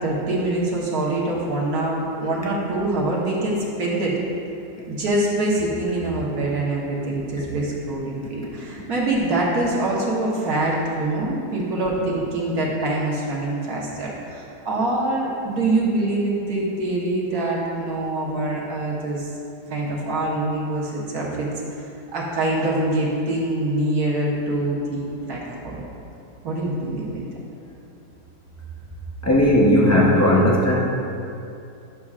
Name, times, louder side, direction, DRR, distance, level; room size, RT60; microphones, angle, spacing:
voice 1, 0.0-4.2 4.9-19.3 19.7-21.5 22.1-25.9 26.4-27.3, right 2 dB, 60° right, -4 dB, 1.7 m, -24 dB
voice 2, 29.2-30.7, left 1 dB, 25° left, -4 dB, 0.3 m, -16 dB
11.0 x 6.7 x 2.5 m, 2.7 s
omnidirectional pair, 1.8 m